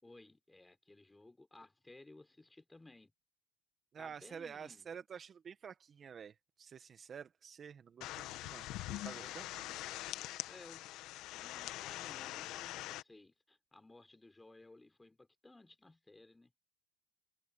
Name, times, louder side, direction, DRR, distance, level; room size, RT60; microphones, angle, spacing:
voice 1, 0.0-3.1 4.0-4.9 9.1-9.8 10.5-10.9 11.3-16.5, left 2 dB, 10° left, 3.9 m, -59 dB
voice 2, 3.9-9.6, right 7 dB, 30° right, 1.5 m, -50 dB
sound 1, 8.0-13.0, left 16 dB, 55° left, 1.4 m, -44 dB
supercardioid pair, 110°, 0 cm